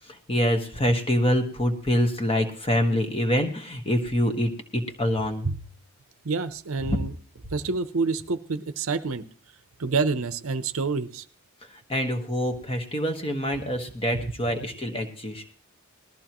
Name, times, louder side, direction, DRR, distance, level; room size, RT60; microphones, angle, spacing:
voice 1, 0.3-5.4 6.9-7.0 11.9-15.4, equal, 25° left, 6 dB, 1.4 m, -25 dB
voice 2, 6.2-7.1 7.5-9.2 9.8-11.3, right 4 dB, 65° right, 12 dB, 0.7 m, -27 dB
20.0 x 13.5 x 3.0 m, 0.40 s
head